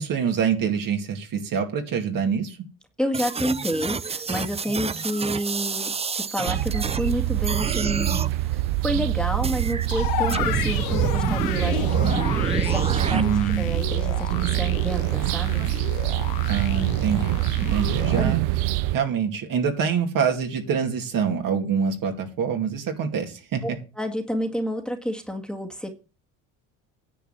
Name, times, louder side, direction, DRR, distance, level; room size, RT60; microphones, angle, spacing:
voice 1, 0.0-2.6 13.1-13.8 16.5-18.4 18.9-23.8, right 7 dB, 55° right, 4 dB, 2.5 m, -25 dB
voice 2, 3.0-15.7 18.2-18.3 23.6-25.9, equal, ahead, 2 dB, 2.0 m, -30 dB
sound 1, 3.1-7.1 7.4-8.3 9.4-9.9 10.3-13.2, right 5 dB, 15° right, 0.5 m, -29 dB
sound 2, 6.5-19.0, right 16 dB, 75° right, 0.7 m, -25 dB
sound 3, 9.9-18.2, left 11 dB, 60° left, 1.3 m, -32 dB
10.0 x 4.7 x 7.5 m, 0.32 s
supercardioid pair, 75°, 40 cm